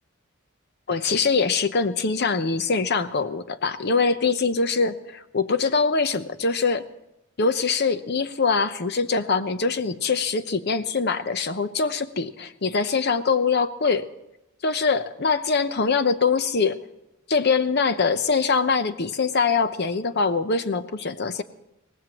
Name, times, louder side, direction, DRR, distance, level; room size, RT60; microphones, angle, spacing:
voice 1, 0.9-6.9 7.4-14.1 14.6-16.8 17.3-21.4, left 4 dB, 55° left, 11 dB, 0.8 m, -23 dB
23.5 x 18.5 x 3.0 m, 0.90 s
head